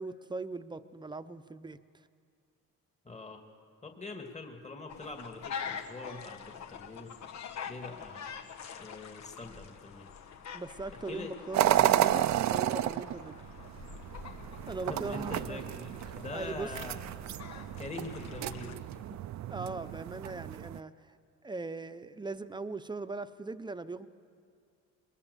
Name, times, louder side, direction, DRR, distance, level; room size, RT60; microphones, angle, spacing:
voice 1, 0.0-2.0 10.5-13.4 14.7-15.6 16.1-17.0 19.5-21.2 21.4-24.1, right 3 dB, 15° right, 11 dB, 0.8 m, -40 dB
voice 2, 3.0-3.4 3.8-7.1 7.7-8.3 8.8-10.1 11.1-11.3 11.6-11.9 14.9-17.0 17.8-19.2, left 3 dB, 20° left, 4 dB, 2.1 m, -44 dB
sound 1, 4.9-18.8, left 7 dB, 65° left, 1.3 m, -45 dB
sound 2, 11.5-20.8, right 13 dB, 65° right, 0.6 m, -32 dB
22.5 x 21.0 x 6.9 m, 2.3 s
cardioid pair, 90°, 30 cm